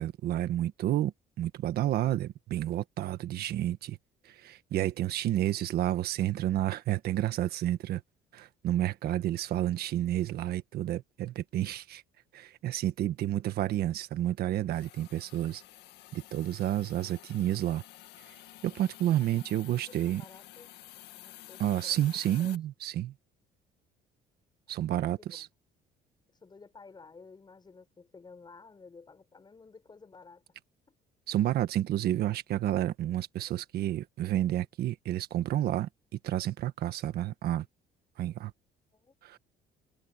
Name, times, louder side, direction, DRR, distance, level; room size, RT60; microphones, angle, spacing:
voice 1, 0.0-4.0 4.2-8.0 8.3-12.0 12.3-15.6 16.1-17.8 18.6-20.2 21.6-23.1 24.7-25.5 31.3-35.9 36.2-37.7 38.2-38.5 39.2-39.4, right 13 dB, 70° right, 1.5 m, -30 dB
Hiss, 14.7-22.6, left 14 dB, 80° left, 2.0 m, -51 dB
voice 2, 19.8-20.7 21.2-22.1 22.4-22.6 24.8-24.9 25.2-25.5 26.3-30.4 30.9-31.0 38.9-39.1, left 4 dB, 25° left, 6.9 m, -53 dB
cardioid pair, 110°, 17 cm